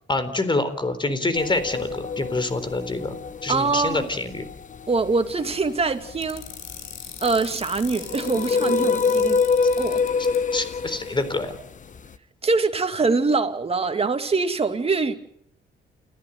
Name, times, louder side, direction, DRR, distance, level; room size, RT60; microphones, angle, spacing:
voice 1, 0.1-3.1 3.4-4.5 10.5-11.5, left 2 dB, 25° left, 3.9 m, -26 dB
sound 1, 1.3-12.2, left 5 dB, 40° left, 1.1 m, -27 dB
voice 2, 3.5-4.1 4.9-6.4 7.2-9.4 9.8-10.0 12.4-15.1, right 4 dB, 30° right, 2.6 m, -23 dB
sound 2, 6.2-10.4, left 10 dB, 80° left, 4.9 m, -38 dB
29.5 x 14.5 x 9.3 m
cardioid pair, 90°, 20 cm